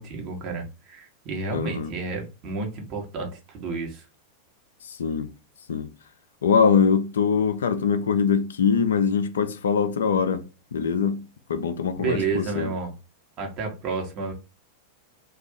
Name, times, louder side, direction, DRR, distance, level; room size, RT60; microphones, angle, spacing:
voice 1, 0.0-4.1 12.0-12.9 13.4-14.3, right 4 dB, 35° right, 0.9 m, -31 dB
voice 2, 1.5-1.9 4.8-5.3 5.7-5.9 6.4-10.4 10.7-11.2 11.5-12.7, left 6 dB, 65° left, 0.3 m, -23 dB
2.5 x 2.3 x 3.5 m
figure-of-eight pair, 90°, 0 cm